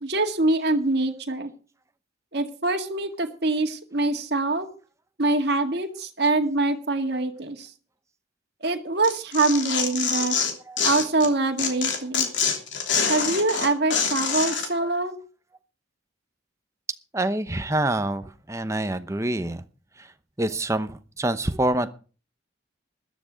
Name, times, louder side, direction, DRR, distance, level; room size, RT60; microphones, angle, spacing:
voice 1, 0.0-1.5 2.3-4.7 5.2-7.7 8.6-10.4 10.8-12.3 13.1-15.2, right 2 dB, 55° right, 3 dB, 2.0 m, -24 dB
Tearing, 9.0-11.3 11.6-14.7, left 6 dB, 65° left, 3.0 m, -25 dB
voice 2, 17.1-19.6 20.0-20.1 20.4-21.9, right 1 dB, 15° right, 10 dB, 0.8 m, -26 dB
13.5 x 12.5 x 5.2 m, 0.37 s
head